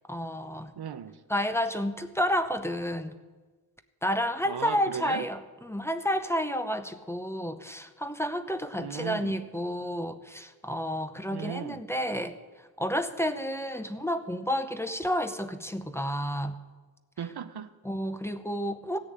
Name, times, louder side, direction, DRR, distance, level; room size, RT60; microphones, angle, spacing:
voice 1, 0.1-0.7 1.3-3.2 4.0-12.4 12.8-16.6 17.8-19.0, equal, 5° left, 0.8 m, -30 dB
voice 2, 0.8-1.2 4.4-5.3 8.8-9.4 11.3-11.8 17.2-17.7, right 7 dB, 85° right, 0.8 m, -36 dB
16.0 x 6.8 x 9.2 m
wide cardioid pair, 110°, 38 cm